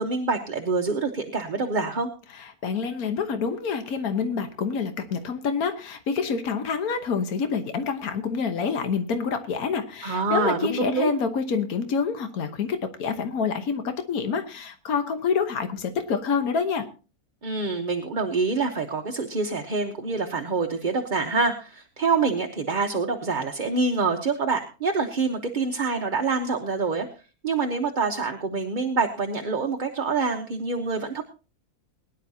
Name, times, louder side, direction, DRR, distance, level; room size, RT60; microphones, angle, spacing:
voice 1, 0.0-2.1 10.0-11.1 17.4-27.1 27.4-31.2, right 4 dB, 35° right, 3 dB, 1.0 m, -26 dB
voice 2, 2.4-16.9, left 5 dB, 75° left, 8 dB, 1.6 m, -27 dB
22.0 x 10.5 x 2.8 m, 0.33 s
omnidirectional pair, 1.6 m